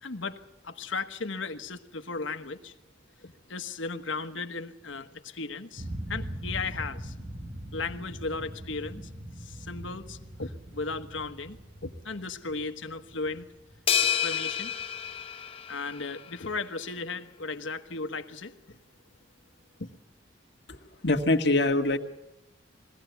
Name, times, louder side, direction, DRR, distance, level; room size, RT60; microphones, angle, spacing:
voice 1, 0.0-2.7 3.2-7.1 7.7-9.1 9.4-13.5 14.1-14.7 15.7-18.8 19.8-19.9, left 4 dB, 90° left, 7 dB, 1.4 m, -36 dB
sound 1, 5.8-14.6, right 1 dB, 30° right, 1.1 m, -41 dB
sound 2, 13.9-16.4, left 8 dB, 30° left, 0.8 m, -29 dB
voice 2, 20.7-22.0, left 2 dB, 60° left, 5 dB, 1.8 m, -24 dB
22.5 x 17.0 x 8.2 m, 0.93 s
head